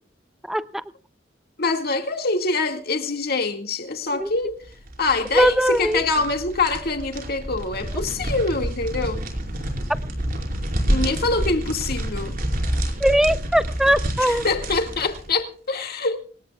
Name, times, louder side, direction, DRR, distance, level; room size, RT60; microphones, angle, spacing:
voice 1, 1.6-4.6 5.0-9.2 10.9-12.4 14.2-16.2, left 3 dB, 55° left, 2.1 m, -25 dB
sound 1, 4.6-15.3, equal, 50° right, 5.1 m, -28 dB
voice 2, 5.3-6.0 13.0-14.4, equal, ahead, 0.6 m, -20 dB
26.0 x 18.5 x 2.4 m
head